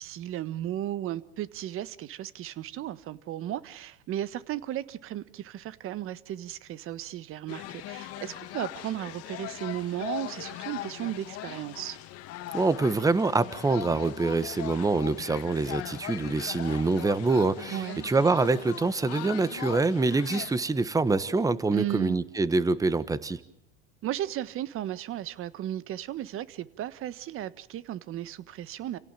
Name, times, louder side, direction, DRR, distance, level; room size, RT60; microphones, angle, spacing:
voice 1, 0.0-12.0 17.7-18.1 21.7-22.2 24.0-29.0, right 12 dB, 45° right, 1.5 m, -35 dB
sound 1, 7.5-20.6, left 15 dB, 50° left, 1.9 m, -40 dB
voice 2, 12.5-23.4, right 3 dB, 10° right, 1.3 m, -25 dB
29.5 x 17.5 x 9.1 m
supercardioid pair, 110°, 30 cm